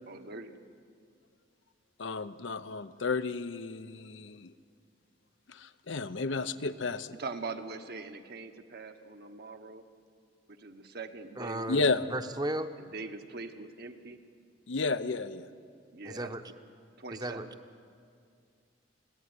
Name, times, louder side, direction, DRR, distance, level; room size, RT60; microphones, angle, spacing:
voice 1, 0.1-0.6 7.1-9.8 10.5-11.7 12.8-14.2 15.9-16.3 17.0-17.5, right 3 dB, 60° right, 6 dB, 1.3 m, -42 dB
voice 2, 2.0-4.5 5.5-7.2 11.7-12.0 14.7-15.5, left 3 dB, 75° left, 11 dB, 0.8 m, -32 dB
voice 3, 11.4-12.7 16.0-16.4 17.1-17.4, right 1 dB, 20° right, 10 dB, 0.9 m, -35 dB
21.5 x 16.0 x 9.6 m, 2.3 s
head